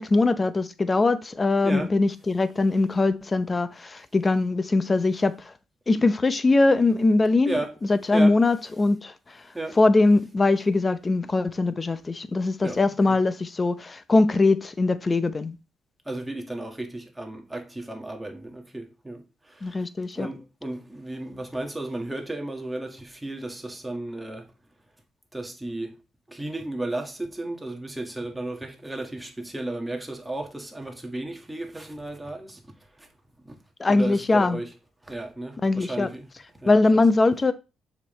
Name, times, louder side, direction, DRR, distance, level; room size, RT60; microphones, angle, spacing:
voice 1, 0.0-5.4 5.9-7.6 7.9-9.1 9.8-15.6 19.6-20.3 33.8-34.6 35.6-36.1 36.7-37.5, left 3 dB, 25° left, 0.7 m, -21 dB
voice 2, 1.6-2.0 7.4-7.7 8.1-8.4 9.5-9.8 12.6-12.8 13.1-13.2 16.1-19.8 20.2-24.5 25.3-26.0 26.3-33.1 33.4-33.6 33.9-34.7 35.0-37.0, right 2 dB, 10° right, 1.7 m, -34 dB
6.8 x 5.3 x 3.2 m
cardioid pair, 90°, 0 cm